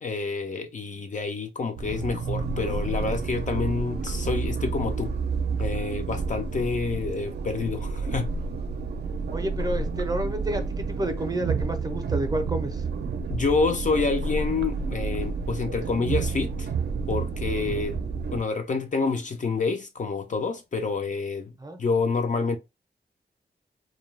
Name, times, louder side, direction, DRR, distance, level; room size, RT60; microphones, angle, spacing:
voice 1, 0.0-5.1 5.6-8.3 13.3-16.7 17.1-18.0 18.3-21.5 21.8-22.6, left 4 dB, 45° left, 0.4 m, -28 dB
sound 1, 1.8-18.4, right 4 dB, 75° right, 0.4 m, -30 dB
voice 2, 9.3-12.8 17.9-18.0 21.6-21.8, right 1 dB, 20° right, 0.5 m, -30 dB
2.2 x 2.2 x 3.2 m
wide cardioid pair, 100°, 17 cm